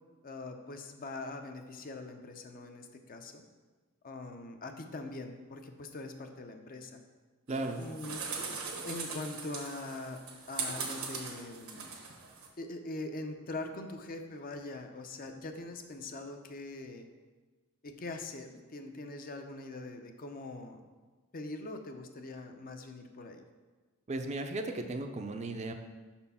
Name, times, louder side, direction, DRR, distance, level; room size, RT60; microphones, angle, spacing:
voice 1, 0.2-3.4 4.0-7.0 7.8-8.2 8.8-10.2 10.5-11.9 12.6-17.1 17.8-20.8 21.3-23.4, left 2 dB, 45° left, 5 dB, 0.6 m, -42 dB
voice 2, 7.5-7.8 24.1-25.7, right 2 dB, 35° right, 6 dB, 0.5 m, -36 dB
sound 1, 7.5-12.5, right 5 dB, 85° right, 1.3 m, -40 dB
6.1 x 4.3 x 5.5 m, 1.3 s
head